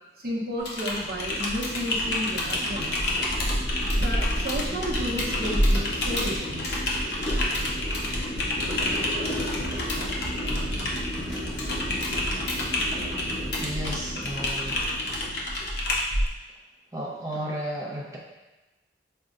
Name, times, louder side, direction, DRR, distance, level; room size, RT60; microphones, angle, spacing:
voice 1, 0.2-3.1 3.9-6.8, equal, 55° right, -5 dB, 0.7 m, -32 dB
Typing, 0.6-16.3, left 1 dB, 65° left, 0.5 m, -29 dB
sound 1, 0.9-15.9, equal, 35° left, 1.1 m, -33 dB
voice 2, 13.6-15.0 16.9-18.2, equal, 20° right, -5 dB, 0.5 m, -33 dB
5.2 x 2.1 x 2.4 m, 1.1 s
head